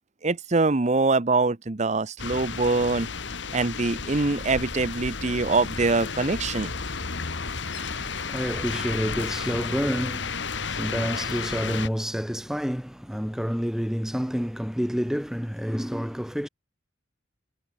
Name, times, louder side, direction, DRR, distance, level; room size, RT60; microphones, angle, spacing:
voice 1, 0.2-3.1 3.5-6.7, right 3 dB, 35° right, 0.8 m, -24 dB
sound 1, 2.2-11.9, left 5 dB, 60° left, 1.6 m, -32 dB
voice 2, 7.4-16.5, equal, 5° right, 1.9 m, -29 dB
head